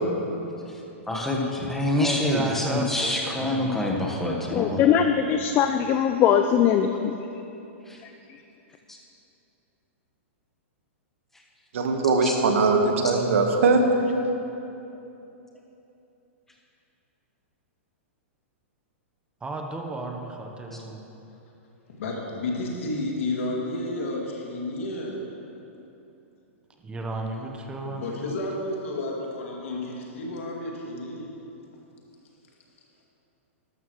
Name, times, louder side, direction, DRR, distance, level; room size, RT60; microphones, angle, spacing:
voice 1, 1.1-4.8 7.9-8.0 8.9-9.0 12.2-12.4, left 1 dB, 5° left, -2 dB, 1.4 m, -26 dB
voice 2, 1.9-3.7 19.4-21.0 26.8-28.2, right 2 dB, 15° right, 2 dB, 1.0 m, -33 dB
voice 3, 4.5-7.1 8.0-8.1, left 8 dB, 30° left, 7 dB, 0.4 m, -21 dB
voice 4, 11.7-13.8, right 3 dB, 70° right, 3 dB, 1.4 m, -21 dB
voice 5, 22.0-25.2 27.8-31.3, left 2 dB, 75° left, -2 dB, 2.4 m, -31 dB
12.5 x 12.5 x 3.2 m, 2.9 s
hypercardioid pair, 135°, 7 cm